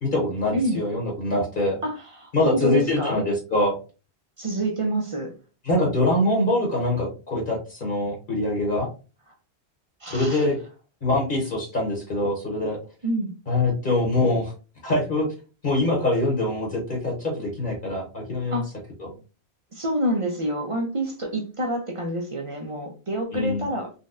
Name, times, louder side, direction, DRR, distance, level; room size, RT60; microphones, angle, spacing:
voice 1, 0.0-1.8 2.3-3.8 5.6-8.9 10.1-10.6 11.0-12.8 13.5-14.5 14.8-15.3 15.6-18.6 19.0-19.1 23.3-23.6, left 1 dB, 50° left, 1.0 m, -24 dB
voice 2, 1.8-3.2 4.4-5.3 10.0-10.5 13.0-13.3 18.5-18.7 19.7-23.9, equal, 40° right, 0.5 m, -27 dB
3.9 x 2.1 x 2.5 m
omnidirectional pair, 1.1 m